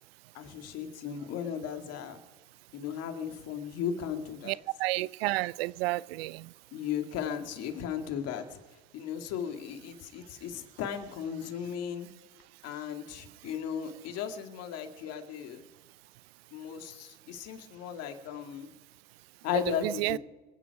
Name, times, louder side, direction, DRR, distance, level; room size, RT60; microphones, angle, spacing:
voice 1, 0.3-2.2 2.7-4.6 6.7-8.6 8.9-12.1 12.6-15.6 16.5-18.7 19.4-20.2, left 8 dB, 55° left, 2.3 m, -36 dB
voice 2, 4.4-6.4 19.5-20.2, right 19 dB, 80° right, 0.5 m, -31 dB
26.5 x 9.5 x 4.8 m
supercardioid pair, 100°, 30 cm